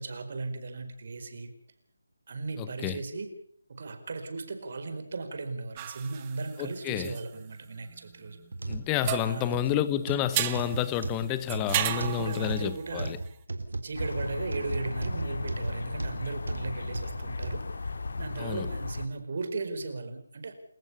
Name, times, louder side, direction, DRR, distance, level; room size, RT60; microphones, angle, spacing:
voice 1, 0.0-1.5 2.3-3.3 3.7-8.4 9.2-9.6 11.7-13.1 13.8-17.6 18.2-20.5, right 3 dB, 50° right, 4.6 m, -36 dB
voice 2, 2.6-3.0 6.6-7.1 8.7-13.2 18.4-18.7, left 12 dB, 15° left, 1.0 m, -30 dB
sound 1, 5.8-8.7 9.0-13.4, right 13 dB, 20° right, 1.2 m, -35 dB
sound 2, 8.5-17.6 18.2-18.3 19.0-19.1, right 2 dB, 75° right, 3.8 m, -36 dB
sound 3, 14.0-19.1, left 3 dB, 65° left, 2.1 m, -36 dB
29.5 x 14.5 x 7.1 m
figure-of-eight pair, 160°, 0 cm